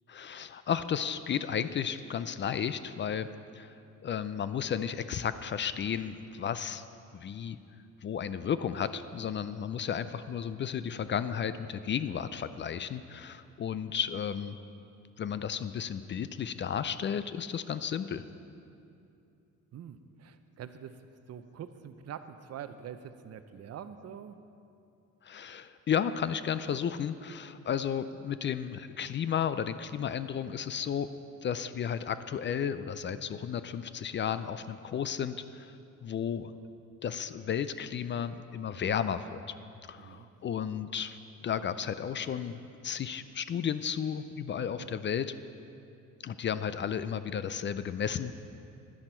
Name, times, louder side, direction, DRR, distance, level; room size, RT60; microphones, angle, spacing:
voice 1, 0.1-3.7 4.0-6.8 7.1-7.6 8.0-14.6 15.2-18.2 25.2-31.1 31.4-35.8 36.0-36.5 37.0-39.4 39.9-41.2 41.4-42.6 42.8-45.3 46.2-48.5, left 8 dB, 40° left, 13 dB, 0.4 m, -33 dB
voice 2, 19.7-20.9 21.3-24.4 40.0-40.3 44.8-44.9, right 8 dB, 55° right, 10 dB, 0.6 m, -45 dB
11.0 x 10.0 x 4.4 m, 2.7 s
cardioid pair, 90°, 30 cm